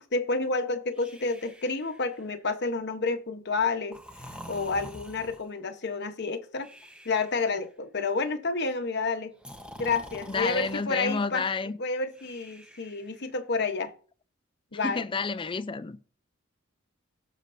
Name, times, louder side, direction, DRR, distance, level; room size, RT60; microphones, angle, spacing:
voice 1, 0.0-4.0 4.5-6.7 7.0-9.3 9.8-11.4 11.8-13.9 14.7-15.1, left 3 dB, 55° left, 1.0 m, -29 dB
Breathing, 0.9-2.5 3.9-5.6 6.6-7.6 9.4-10.8 12.1-13.3, equal, 5° right, 1.0 m, -47 dB
voice 2, 10.3-11.8 14.8-16.0, left 4 dB, 25° left, 0.4 m, -30 dB
17.0 x 6.5 x 2.6 m
head